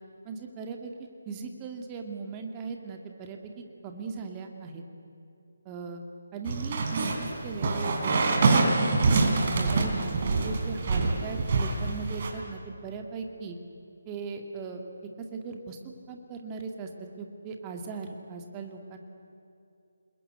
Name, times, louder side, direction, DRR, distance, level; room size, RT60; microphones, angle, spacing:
voice 1, 0.2-0.9 1.3-3.5 3.8-4.8 5.7-6.0 6.3-8.7 9.0-10.1 10.4-13.6 14.1-14.8 15.2-19.0, right 4 dB, 20° right, 3 dB, 2.2 m, -38 dB
sound 1, 6.4-12.3, right 3 dB, 40° right, 4.0 m, -25 dB
28.0 x 21.0 x 9.5 m, 2.7 s
figure-of-eight pair, 150°, 0 cm